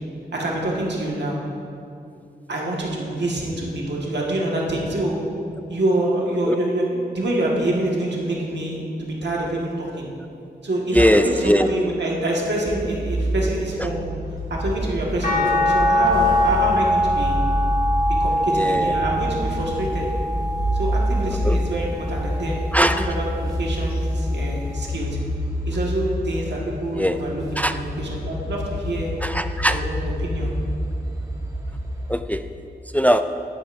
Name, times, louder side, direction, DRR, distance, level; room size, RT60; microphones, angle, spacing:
voice 1, 0.3-1.4 2.5-5.2 5.7-10.0 10.6-14.0 14.5-17.4 18.2-20.1 20.7-25.2 25.6-29.1 29.7-30.5, right 1 dB, 80° right, -3 dB, 1.7 m, -26 dB
voice 2, 10.9-11.7 18.6-18.9 21.4-21.6 22.7-23.1 27.0-27.2 27.6-27.8 29.2-29.8 32.1-32.4 32.9-33.2, equal, 10° left, 9 dB, 0.3 m, -19 dB
sound 1, 12.6-32.2, equal, 20° right, 1.6 m, -27 dB
sound 2, 15.2-21.5 22.1-23.4 24.9-25.0, left 1 dB, 55° left, 2.4 m, -23 dB
11.5 x 10.5 x 2.6 m, 2.5 s
cardioid pair, 60°, 18 cm